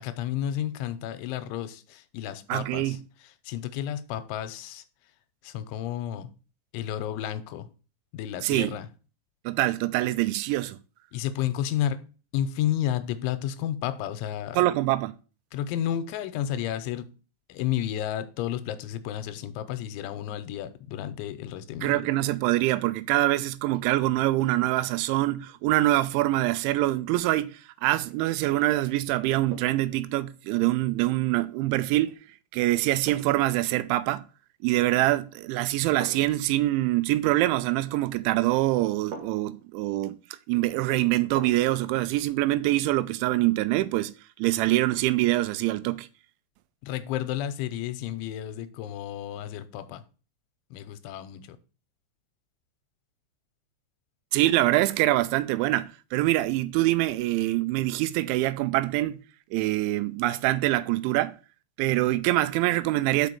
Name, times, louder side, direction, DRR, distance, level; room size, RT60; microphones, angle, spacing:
voice 1, 0.0-3.0 3.5-4.8 5.4-6.3 6.7-7.7 8.1-8.9 11.1-12.0 12.3-14.6 15.5-17.1 17.5-22.0 46.8-50.0 50.7-51.6, left 11 dB, 90° left, 3.1 m, -31 dB
voice 2, 2.5-3.0 8.4-8.8 9.5-10.8 14.6-15.1 21.8-32.1 32.5-34.2 34.6-40.2 40.5-44.1 44.4-46.1 54.3-59.2 59.5-61.4 61.8-63.3, right 16 dB, 85° right, 2.9 m, -24 dB
sound 1, 28.0-28.3 29.5-29.9 32.0-32.2 33.1-33.5 34.9-35.3 36.0-36.4 38.1-38.2 39.1-39.6 41.4-41.8 42.2-42.3, right 5 dB, 65° right, 2.2 m, -43 dB
6.3 x 5.3 x 6.9 m
omnidirectional pair, 5.4 m